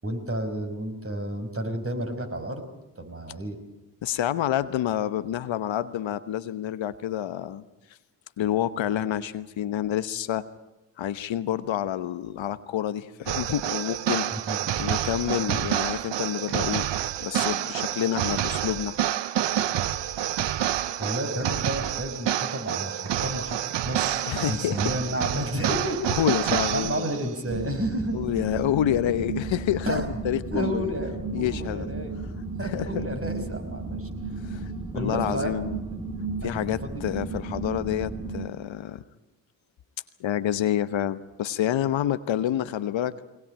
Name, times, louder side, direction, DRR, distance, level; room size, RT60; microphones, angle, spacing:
voice 1, 0.0-2.6 3.0-3.6 14.5-14.6 21.0-23.6 23.8-26.0 26.7-28.2 29.8-30.1 30.5-32.1 32.5-34.1 34.9-35.6 36.4-37.1, right 1 dB, 30° right, 5 dB, 5.3 m, -31 dB
voice 2, 4.0-7.6 8.4-10.4 11.0-14.2 14.8-16.9 17.2-19.0 24.3-24.8 26.1-27.0 28.1-30.9 31.3-31.9 32.6-33.1 34.4-35.8 36.4-39.0 40.2-43.1, left 11 dB, 70° left, 13 dB, 1.1 m, -28 dB
sound 1, 13.3-27.3, right 11 dB, 65° right, 0.9 m, -28 dB
sound 2, 27.5-38.5, right 3 dB, 10° right, 2.5 m, -34 dB
21.5 x 19.5 x 8.8 m, 1.0 s
supercardioid pair, 50°, 47 cm